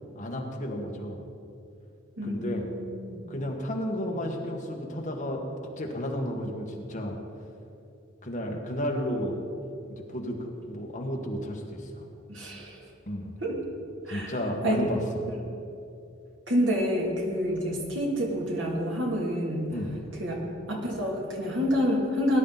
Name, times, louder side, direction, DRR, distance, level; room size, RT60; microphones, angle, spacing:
voice 1, 0.1-1.2 2.2-2.6 3.3-5.4 5.8-7.2 8.2-9.4 9.9-12.0 13.1-13.3 14.1-15.0 19.7-19.9, equal, 40° left, 0 dB, 1.7 m, -32 dB
voice 2, 2.2-3.2 12.3-12.9 13.4-13.6 14.0-14.3 14.6-14.8 15.3-15.4 16.5-19.7 20.2-20.4 20.7-22.4, equal, 65° right, -2 dB, 2.7 m, -28 dB
19.0 x 11.0 x 4.1 m, 2.7 s
head